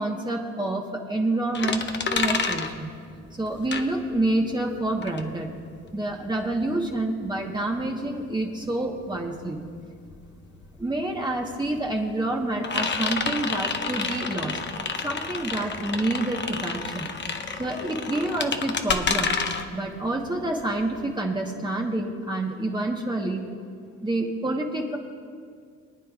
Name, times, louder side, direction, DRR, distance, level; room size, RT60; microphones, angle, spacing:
voice 1, 0.0-2.9 3.3-5.5 5.9-9.6 10.8-14.6 15.0-17.1 17.6-19.4 19.7-23.5 24.0-25.0, right 2 dB, 15° right, -1 dB, 1.2 m, -28 dB
sound 1, 1.5-4.4 4.7-21.1, left 5 dB, 40° left, 0.9 m, -30 dB
25.0 x 9.3 x 2.4 m, 2.2 s
cardioid pair, 90°, 30 cm